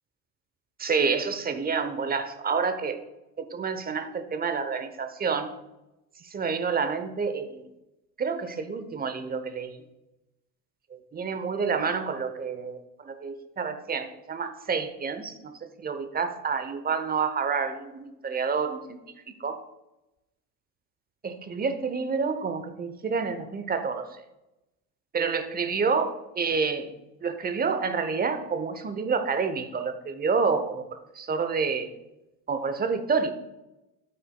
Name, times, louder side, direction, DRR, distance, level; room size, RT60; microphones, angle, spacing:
voice 1, 0.8-3.0 3.4-5.5 6.2-7.6 8.2-9.8 10.9-12.8 13.1-19.0 19.4-19.6 21.2-24.1 25.1-26.1 26.4-26.9 27.2-30.9 31.1-31.9 32.5-33.3, right 5 dB, 20° right, 9 dB, 0.9 m, -28 dB
13.0 x 8.5 x 2.3 m, 0.96 s
figure-of-eight pair, 75°, 49 cm